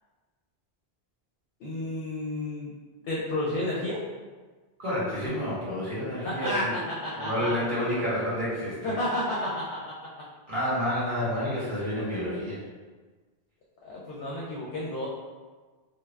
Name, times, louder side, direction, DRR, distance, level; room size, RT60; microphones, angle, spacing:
voice 1, 1.6-2.7 3.0-4.0 6.2-7.6 8.8-10.1 13.8-15.1, left 1 dB, 70° left, -5 dB, 0.7 m, -31 dB
voice 2, 4.8-6.7 7.2-9.0 10.5-12.6, equal, 50° right, -9 dB, 1.2 m, -29 dB
2.3 x 2.1 x 3.1 m, 1.4 s
omnidirectional pair, 1.1 m